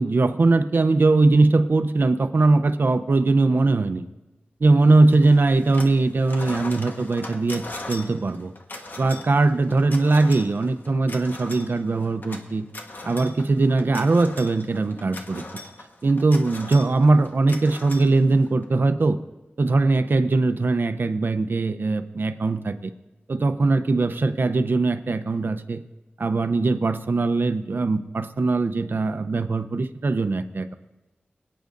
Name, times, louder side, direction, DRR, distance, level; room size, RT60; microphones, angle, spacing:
voice 1, 0.0-4.1 4.6-8.5 9.0-12.7 13.0-15.4 16.0-19.2 19.6-22.9 23.3-25.8 26.2-30.7, right 3 dB, 65° right, 9 dB, 0.6 m, -21 dB
sound 1, 5.1-6.0 6.2-18.6, left 2 dB, 55° left, 1.3 m, -39 dB
24.5 x 9.4 x 2.6 m, 1.0 s
wide cardioid pair, 80°, 4 cm